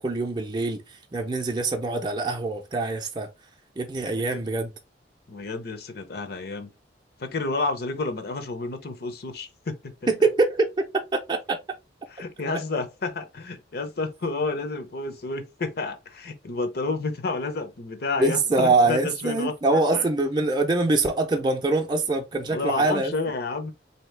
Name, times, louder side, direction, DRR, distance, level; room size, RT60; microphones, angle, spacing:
voice 1, 0.0-3.3 3.8-4.7 10.1-10.7 11.1-11.6 18.2-23.1, right 3 dB, 25° right, 0.5 m, -24 dB
voice 2, 5.3-6.7 7.2-9.9 12.1-20.0 22.5-23.7, left 3 dB, 55° left, 0.7 m, -30 dB
3.9 x 2.8 x 3.2 m
head